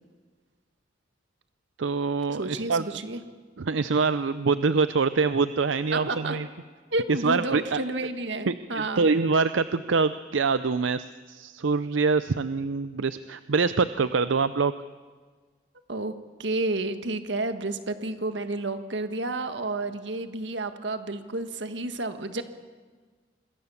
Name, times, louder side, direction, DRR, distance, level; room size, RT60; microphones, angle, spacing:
voice 1, 1.8-3.0 3.6-6.5 7.2-7.8 8.5-14.7, right 4 dB, 90° right, 13 dB, 0.6 m, -25 dB
voice 2, 2.3-3.2 5.9-6.4 6.9-9.1 15.9-16.1 16.4-22.4, right 2 dB, 70° right, 9 dB, 1.7 m, -30 dB
26.5 x 21.0 x 7.1 m, 1.5 s
head